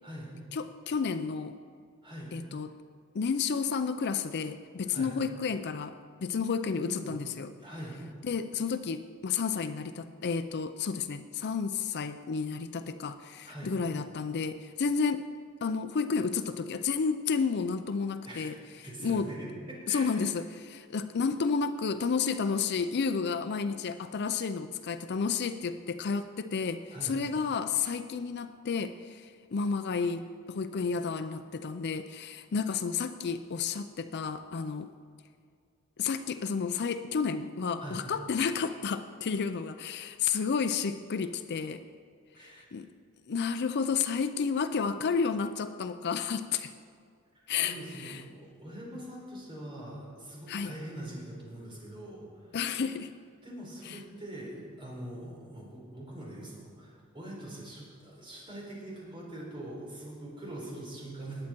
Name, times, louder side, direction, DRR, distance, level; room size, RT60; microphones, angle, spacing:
voice 1, 0.0-0.3 2.0-2.3 4.8-5.1 6.8-7.2 7.6-8.0 13.4-13.7 18.2-18.5 18.8-20.2 26.9-27.2 37.8-38.0 42.3-42.7 47.6-52.6 53.4-61.5, right 1 dB, 25° right, -4 dB, 4.3 m, -43 dB
voice 2, 0.5-1.6 2.3-2.7 3.1-5.9 6.2-7.5 8.2-15.3 15.6-18.6 19.0-19.3 19.9-34.9 36.0-41.8 42.7-42.9 43.3-46.7 47.5-48.2 50.5-50.7 52.5-53.1 53.9-54.0, left 5 dB, 50° left, 10 dB, 0.5 m, -31 dB
20.0 x 8.7 x 4.5 m, 2.1 s
head